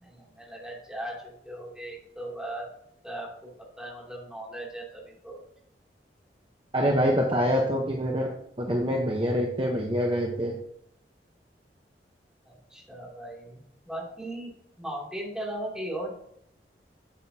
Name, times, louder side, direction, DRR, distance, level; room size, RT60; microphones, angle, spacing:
voice 1, 0.0-2.7 3.0-3.3 3.8-5.4 12.5-14.5 14.8-16.1, right 1 dB, 5° right, -4 dB, 2.7 m, -38 dB
voice 2, 6.7-8.3 8.6-10.6, equal, 30° right, -1 dB, 1.0 m, -25 dB
8.3 x 8.2 x 2.8 m, 0.71 s
head